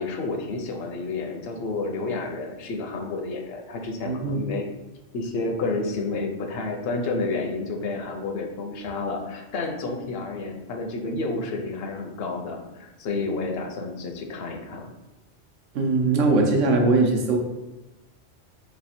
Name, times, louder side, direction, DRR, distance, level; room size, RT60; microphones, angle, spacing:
voice 1, 0.0-4.6 5.1-14.9, left 3 dB, 60° left, 3 dB, 0.8 m, -30 dB
voice 2, 4.0-4.4 15.7-17.4, right 3 dB, 85° right, 2 dB, 1.0 m, -21 dB
3.3 x 2.4 x 4.2 m, 1.0 s
omnidirectional pair, 1.2 m